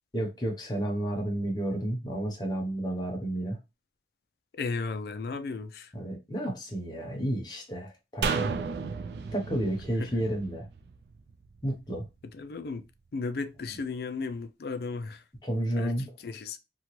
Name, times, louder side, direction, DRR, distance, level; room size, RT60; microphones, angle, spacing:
voice 1, 0.1-3.6 5.9-8.5 9.3-10.7 11.6-12.1 15.4-16.1, right 1 dB, 25° left, 0.8 m, -31 dB
voice 2, 4.6-5.9 10.0-10.1 12.3-12.9 13.1-15.2 15.8-15.9 16.2-16.6, left 4 dB, 60° left, 0.4 m, -34 dB
sound 1, 8.2-11.6 11.9-12.0, right 5 dB, 70° right, 0.3 m, -33 dB
2.9 x 2.3 x 3.0 m
head